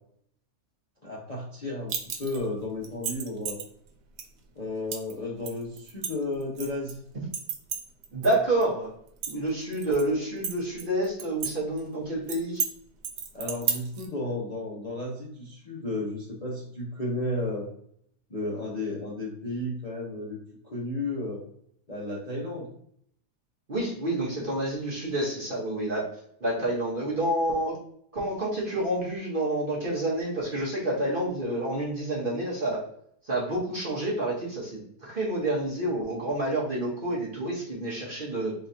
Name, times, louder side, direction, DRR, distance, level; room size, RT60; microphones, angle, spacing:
voice 1, 1.0-1.9 2.2-3.6 4.6-7.0 13.3-17.7 18.3-20.4 20.6-21.4 21.9-22.7, left 2 dB, 35° left, -5 dB, 0.7 m, -33 dB
sound 1, 1.9-2.4 2.8-3.7 4.2-4.3 4.9-5.1 5.5-6.9 7.3-8.3 8.6-8.7 9.1-10.0 10.4-11.5 11.8-11.9 12.3-12.7 13.0-14.1, right 7 dB, 85° right, 1.3 m, -32 dB
voice 2, 8.1-8.9 9.3-12.6 23.7-26.1 26.4-27.8 28.1-32.8 33.2-38.5, right 1 dB, 35° right, -4 dB, 1.1 m, -28 dB
4.3 x 3.1 x 2.7 m, 0.65 s
omnidirectional pair, 1.8 m